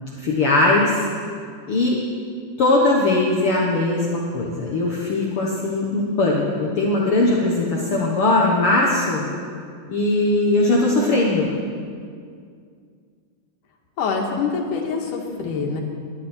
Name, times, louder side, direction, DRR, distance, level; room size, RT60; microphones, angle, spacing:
voice 1, 0.2-1.0 1.7-2.0 2.6-9.2 9.9-11.5, left 2 dB, 55° left, -3 dB, 1.9 m, -20 dB
voice 2, 14.0-15.8, left 5 dB, 85° left, 1 dB, 3.2 m, -25 dB
20.0 x 12.0 x 4.4 m, 2.2 s
omnidirectional pair, 3.5 m